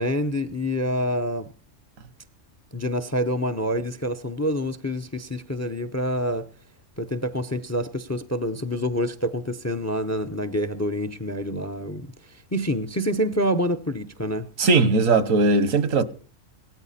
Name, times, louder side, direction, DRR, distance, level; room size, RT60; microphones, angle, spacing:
voice 1, 0.0-1.5 2.7-6.5 7.0-14.5, equal, 20° left, 0.5 m, -27 dB
voice 2, 14.6-16.0, right 3 dB, 80° right, 1.5 m, -19 dB
17.5 x 13.5 x 4.2 m
omnidirectional pair, 1.4 m